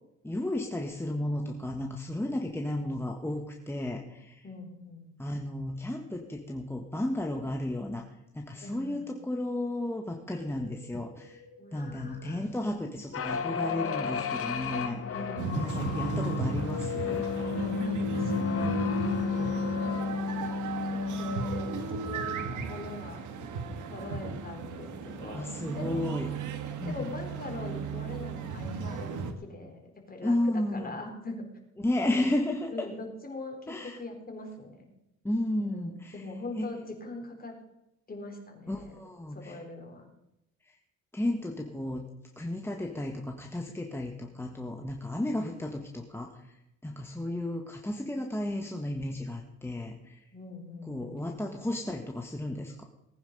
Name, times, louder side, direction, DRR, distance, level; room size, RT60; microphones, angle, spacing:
voice 1, 0.2-4.4 5.2-8.1 8.3-11.4 11.7-15.0 15.6-17.3 25.3-26.3 26.8-27.1 30.2-30.9 31.8-32.9 33.7-34.0 35.2-36.2 36.6-36.7 38.7-39.6 40.6-40.8 41.1-46.6 46.8-50.3 50.9-52.8, left 1 dB, 10° left, 2 dB, 1.5 m, -33 dB
voice 2, 4.4-5.1 8.6-9.1 11.6-12.4 15.1-16.2 17.7-18.8 19.4-23.2 23.9-26.1 26.9-31.5 32.0-32.3 32.7-34.9 35.6-37.6 38.1-39.0 39.3-40.1 50.3-51.1, left 2 dB, 30° left, 3 dB, 3.9 m, -42 dB
Wind, 10.1-13.3 13.6-13.7, equal, 60° right, 6.3 m, -56 dB
sound 1, 13.1-21.9, left 5 dB, 50° left, 1.7 m, -32 dB
sound 2, 15.4-29.3, right 4 dB, 80° right, 1.7 m, -35 dB
18.5 x 9.5 x 5.3 m, 0.87 s
cardioid pair, 90°, 30 cm